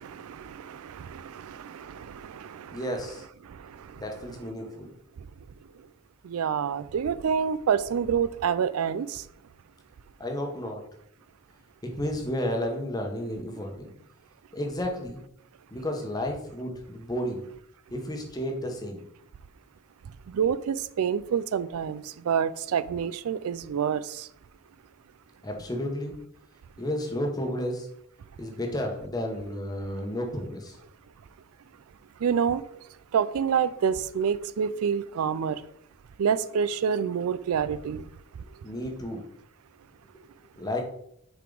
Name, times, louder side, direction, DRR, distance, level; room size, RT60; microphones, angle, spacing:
voice 1, 0.0-2.8 6.2-9.2 20.3-24.3 32.2-32.6 33.1-35.6 36.2-38.0, right 7 dB, 80° right, 0.4 m, -27 dB
voice 2, 2.7-3.3 4.0-4.9 10.2-10.9 11.8-13.9 14.5-15.2 15.7-17.4 17.9-19.0 25.4-26.1 26.8-27.9 28.4-30.8 38.4-39.2 40.2-40.8, left 1 dB, 15° left, 1.0 m, -32 dB
6.8 x 4.7 x 3.9 m
head